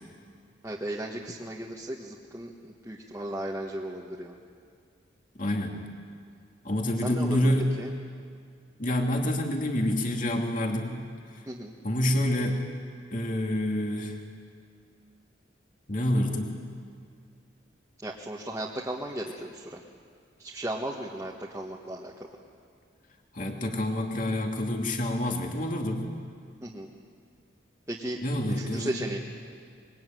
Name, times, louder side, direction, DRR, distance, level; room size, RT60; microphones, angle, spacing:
voice 1, 0.6-4.3 7.0-7.9 11.5-11.7 18.0-19.8 20.4-22.3 26.6-26.9 27.9-28.2 28.5-29.2, right 1 dB, 15° right, -4 dB, 1.7 m, -36 dB
voice 2, 5.4-5.8 6.6-7.7 8.8-11.0 11.3-11.4 11.8-12.6 13.1-14.2 15.9-16.6 23.3-26.1 28.2-29.0, left 1 dB, 45° left, 2 dB, 2.6 m, -27 dB
25.5 x 22.0 x 9.4 m, 2.2 s
head